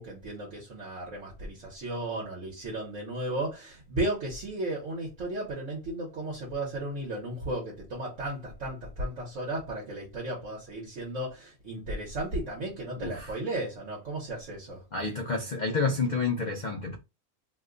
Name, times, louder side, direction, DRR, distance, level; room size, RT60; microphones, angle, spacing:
voice 1, 0.0-14.8, right 1 dB, 60° right, 1.3 m, -34 dB
voice 2, 13.0-13.4 14.9-17.0, left 4 dB, 70° left, 0.4 m, -29 dB
2.9 x 2.2 x 3.7 m
omnidirectional pair, 1.5 m